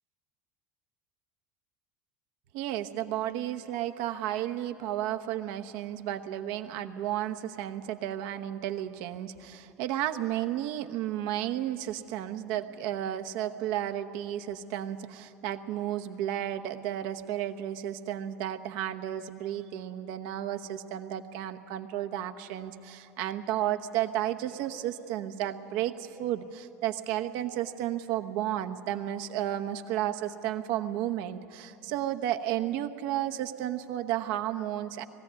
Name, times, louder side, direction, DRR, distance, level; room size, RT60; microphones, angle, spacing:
voice 1, 2.5-35.0, right 12 dB, 60° right, 7 dB, 1.0 m, -33 dB
20.0 x 15.0 x 9.5 m, 2.9 s
hypercardioid pair, 75°, 8 cm